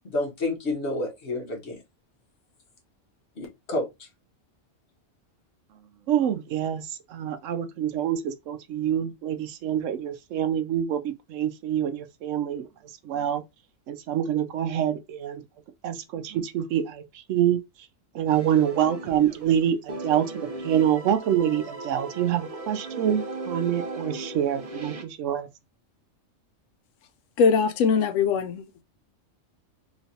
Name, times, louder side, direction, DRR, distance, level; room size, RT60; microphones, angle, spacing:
voice 1, 0.0-1.8 3.4-4.1, left 2 dB, 60° left, 1.2 m, -30 dB
voice 2, 6.1-12.7 13.0-13.4 13.9-15.4 15.8-17.6 18.1-25.5, right 10 dB, 80° right, 0.9 m, -26 dB
sound 1, 18.3-19.6 19.9-25.0, right 2 dB, 55° right, 0.4 m, -37 dB
voice 3, 27.4-28.8, left 5 dB, 80° left, 0.9 m, -22 dB
3.1 x 3.1 x 2.7 m
omnidirectional pair, 1.3 m